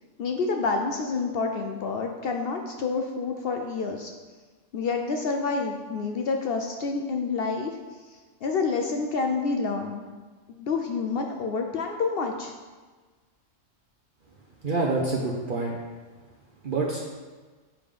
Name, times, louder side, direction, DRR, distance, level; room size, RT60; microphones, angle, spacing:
voice 1, 0.2-4.1 4.7-7.7 8.4-10.0 10.5-12.5, left 4 dB, 65° left, 3 dB, 0.6 m, -28 dB
voice 2, 14.6-15.7 16.6-17.0, right 3 dB, 50° right, -3 dB, 0.7 m, -26 dB
7.1 x 3.5 x 5.0 m, 1.4 s
omnidirectional pair, 1.3 m